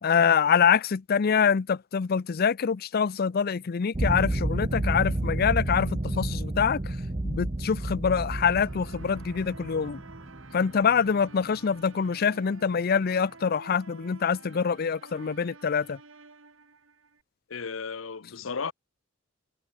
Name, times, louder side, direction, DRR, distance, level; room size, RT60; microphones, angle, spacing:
voice 1, 0.0-6.9 7.2-10.0 10.5-16.0, left 6 dB, 50° left, 0.5 m, -25 dB
sound 1, 3.9-11.6, right 1 dB, 30° right, 0.9 m, -31 dB
sound 2, 8.2-17.2, right 3 dB, 80° right, 2.8 m, -50 dB
voice 2, 17.5-18.7, left 5 dB, 75° left, 0.8 m, -34 dB
head